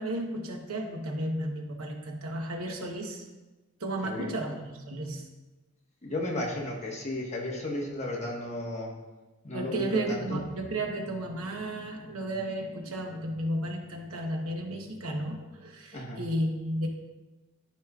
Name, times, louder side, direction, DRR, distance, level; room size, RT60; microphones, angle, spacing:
voice 1, 0.0-3.3 3.8-5.3 9.5-16.9, right 1 dB, 80° right, 2 dB, 1.0 m, -33 dB
voice 2, 6.0-8.9 9.4-10.4 15.9-16.2, left 1 dB, 30° left, -2 dB, 1.4 m, -34 dB
12.5 x 5.1 x 2.4 m, 1.2 s
head